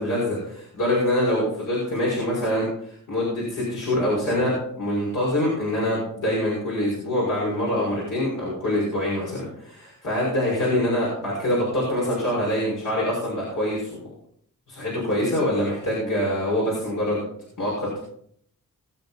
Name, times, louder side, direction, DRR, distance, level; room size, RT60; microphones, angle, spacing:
voice 1, 0.0-14.0 14.7-17.2 17.6-17.9, left 1 dB, 70° left, -5 dB, 6.1 m, -25 dB
21.5 x 7.8 x 4.3 m, 0.65 s
wide cardioid pair, 135°, 32 cm